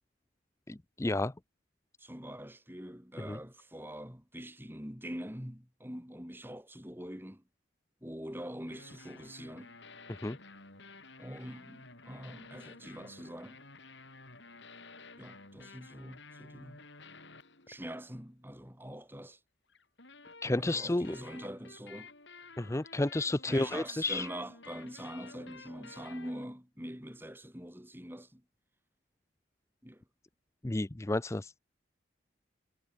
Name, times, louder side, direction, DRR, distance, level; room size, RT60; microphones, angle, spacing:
voice 1, 0.7-1.3 3.2-3.4 10.1-10.4 20.4-21.2 22.6-24.3 30.6-31.5, left 2 dB, 15° left, 0.5 m, -31 dB
voice 2, 2.0-7.4 8.0-9.7 11.2-13.6 15.2-16.8 17.7-19.4 20.6-22.1 23.5-28.4 29.8-30.0, equal, 10° right, 7.4 m, -44 dB
sound 1, 8.7-18.2 19.7-26.5, left 3 dB, 65° left, 7.0 m, -53 dB
head